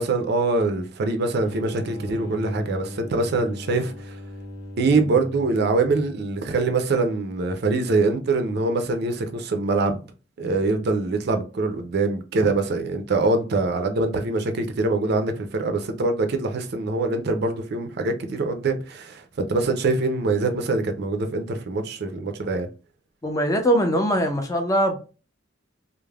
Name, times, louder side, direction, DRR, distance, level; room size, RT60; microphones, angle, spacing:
voice 1, 0.0-3.9 4.8-10.0 10.4-22.7, right 3 dB, 60° right, 0.4 m, -24 dB
sound 1, 1.3-6.7, equal, 75° left, 0.8 m, -38 dB
voice 2, 23.2-25.0, equal, 20° left, 0.4 m, -21 dB
3.2 x 2.0 x 2.2 m
head